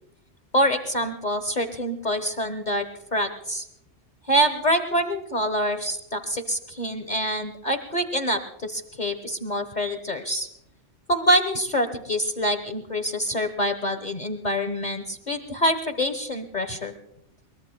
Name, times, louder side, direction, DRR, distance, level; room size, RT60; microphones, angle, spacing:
voice 1, 0.5-2.8 3.1-3.7 4.3-10.5 11.1-16.9, equal, 40° left, 8 dB, 1.2 m, -25 dB
22.5 x 21.5 x 2.2 m, 0.80 s
omnidirectional pair, 1.3 m